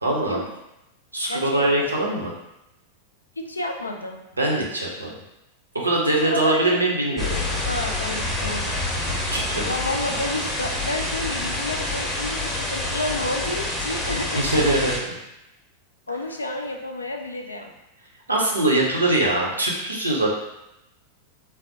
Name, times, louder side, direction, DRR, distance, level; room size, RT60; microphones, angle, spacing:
voice 1, 0.0-0.4 1.1-2.3 4.4-5.1 5.7-7.6 9.0-9.7 14.4-15.1 18.3-20.3, right 2 dB, 80° right, -2 dB, 0.6 m, -22 dB
voice 2, 1.3-1.9 3.4-4.2 6.2-6.8 7.6-8.7 9.7-14.4 16.1-17.7, left 2 dB, 80° left, 4 dB, 0.3 m, -30 dB
sound 1, 7.2-15.0, left 2 dB, 20° left, 0.7 m, -27 dB
3.3 x 2.0 x 2.7 m, 0.90 s
figure-of-eight pair, 90°, 0 cm